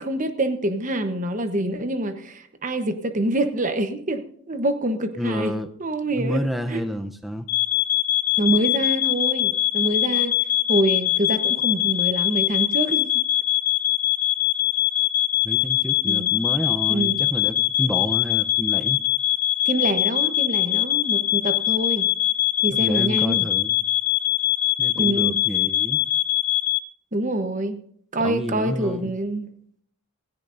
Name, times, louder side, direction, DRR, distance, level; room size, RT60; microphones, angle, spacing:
voice 1, 0.0-5.5 5.8-6.9 8.4-10.3 10.7-13.2 16.0-16.3 16.9-17.2 19.6-22.1 22.6-23.5 24.9-25.4 27.1-27.8 28.1-29.5, right 1 dB, 35° right, 1.0 m, -26 dB
voice 2, 5.2-5.7 6.2-7.5 15.4-19.0 22.8-23.8 24.8-26.0 28.2-29.1, equal, ahead, 0.7 m, -29 dB
sound 1, 7.5-26.8, left 16 dB, 75° left, 0.6 m, -22 dB
17.5 x 16.0 x 2.6 m
head